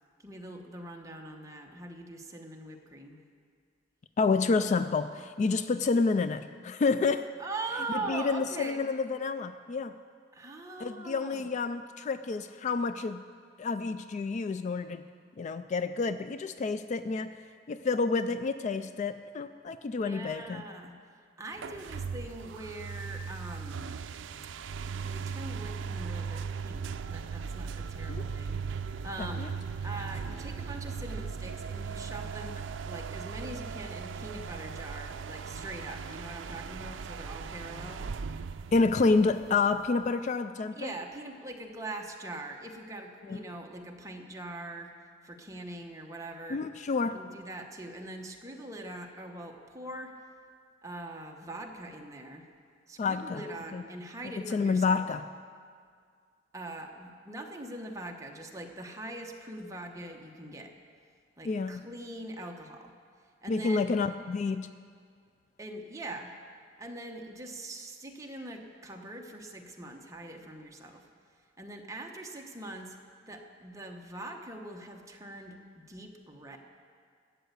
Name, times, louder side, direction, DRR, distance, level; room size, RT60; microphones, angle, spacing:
voice 1, 0.2-3.2 7.4-8.8 10.3-11.5 19.9-20.9 21.4-23.8 25.0-28.6 29.0-29.5 29.8-38.1 40.8-44.9 45.2-46.6 47.0-50.2 50.8-52.5 52.9-55.0 56.5-60.7 61.4-62.9 63.4-63.9 65.6-66.3 66.8-71.1 71.6-73.0 73.3-76.6, right 2 dB, 15° right, 2 dB, 1.1 m, -42 dB
voice 2, 4.2-7.3 8.1-9.9 10.8-13.2 13.6-15.0 15.4-17.3 17.7-20.6 28.1-28.2 29.2-29.5 38.7-40.9 43.3-43.4 46.5-47.2 53.0-53.4 53.7-53.8 54.5-55.2 61.4-61.8 63.5-64.7, left 4 dB, 40° left, 12 dB, 0.3 m, -29 dB
sound 1, 21.6-40.1, right 5 dB, 85° right, 0.4 m, -38 dB
12.5 x 8.0 x 8.2 m, 2.1 s
head